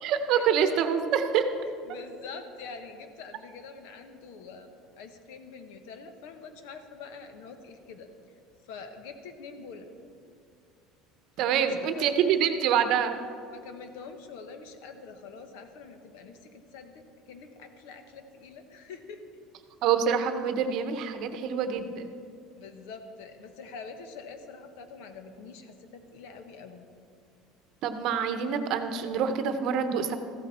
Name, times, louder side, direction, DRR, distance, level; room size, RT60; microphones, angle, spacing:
voice 1, 0.0-1.4 11.4-13.2 19.8-22.1 27.8-30.2, right 8 dB, 45° right, 8 dB, 0.8 m, -26 dB
voice 2, 1.9-4.7 5.0-8.1 8.7-9.9 11.6-12.5 13.5-19.2 22.6-26.9, left 5 dB, 80° left, 7 dB, 1.2 m, -45 dB
14.5 x 13.0 x 4.3 m, 2.5 s
cardioid pair, 170°, 0 cm